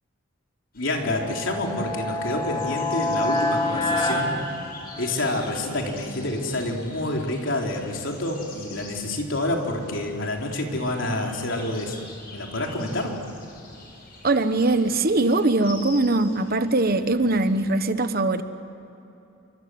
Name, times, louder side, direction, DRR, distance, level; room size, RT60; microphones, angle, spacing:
voice 1, 0.7-4.4 5.0-12.0 12.3-13.2, left 1 dB, 65° left, 1 dB, 4.0 m, -28 dB
sound 1, 0.7-17.7, left 3 dB, 45° left, 6.1 m, -46 dB
sound 2, 1.0-5.3, left 2 dB, 25° left, 3.4 m, -27 dB
voice 2, 14.2-18.4, right 2 dB, 45° right, 10 dB, 1.2 m, -21 dB
28.5 x 25.0 x 7.9 m, 2.9 s
head